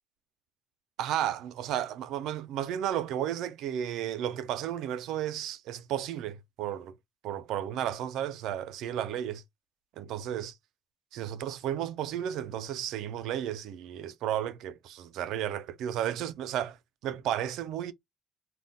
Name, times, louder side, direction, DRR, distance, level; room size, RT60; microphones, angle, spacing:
voice 1, 1.0-6.9 7.2-9.4 10.0-10.6 11.1-16.8 17.0-17.9, right 10 dB, 90° right, 0.3 m, -33 dB
2.2 x 2.0 x 3.7 m
cardioid pair, 90°, 0 cm